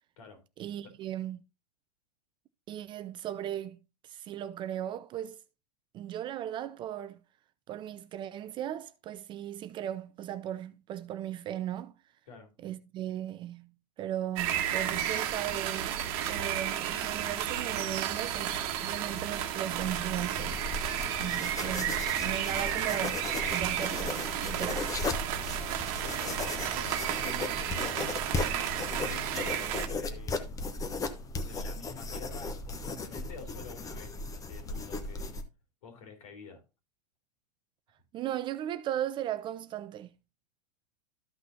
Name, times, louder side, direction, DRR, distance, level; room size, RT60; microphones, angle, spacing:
voice 1, 0.6-1.4 2.7-5.4 5.9-7.2 7.7-11.9 12.6-13.7 14.0-20.6 21.2-23.2 23.5-24.9 38.1-40.1, right 11 dB, 25° right, 0.4 m, -37 dB
sound 1, 14.4-29.9, right 10 dB, 45° right, 1.4 m, -32 dB
sound 2, 19.7-35.4, left 3 dB, 15° left, 1.0 m, -37 dB
voice 2, 25.6-29.6 29.9-30.7 31.4-35.3 35.8-36.6, left 4 dB, 60° left, 3.7 m, -48 dB
13.0 x 5.9 x 2.8 m
figure-of-eight pair, 100°, 20 cm